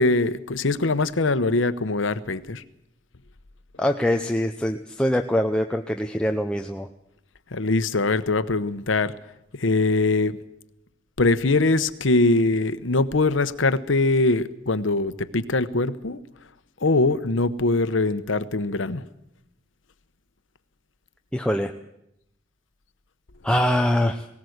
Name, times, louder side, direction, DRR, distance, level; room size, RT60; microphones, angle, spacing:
voice 1, 0.0-2.6 7.5-9.1 9.5-10.4 11.2-16.2 16.8-19.1, left 2 dB, 80° left, 13 dB, 1.0 m, -22 dB
voice 2, 3.8-6.9 21.3-21.7 23.4-24.3, left 1 dB, 5° left, 4 dB, 0.7 m, -23 dB
19.0 x 18.5 x 8.0 m, 0.81 s
head